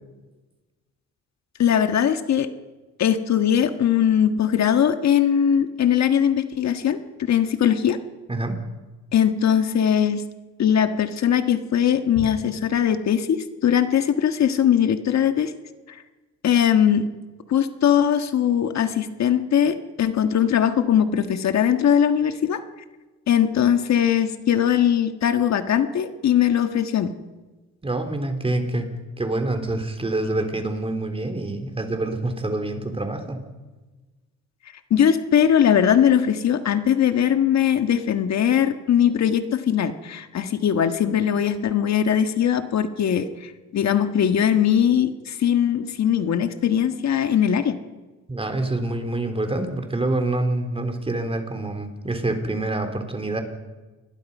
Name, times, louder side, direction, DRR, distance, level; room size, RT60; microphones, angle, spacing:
voice 1, 1.6-2.5 3.0-8.0 9.1-10.2 10.6-15.5 15.9-16.0 16.4-17.1 17.5-22.6 23.3-27.1 34.9-47.8, left 9 dB, 65° left, 8 dB, 1.6 m, -20 dB
voice 2, 8.3-8.6 12.2-12.3 27.8-28.9 29.2-33.4 48.3-53.4, right 2 dB, 20° right, 6 dB, 3.7 m, -26 dB
27.5 x 21.5 x 5.5 m, 1.2 s
cardioid pair, 90°, 30 cm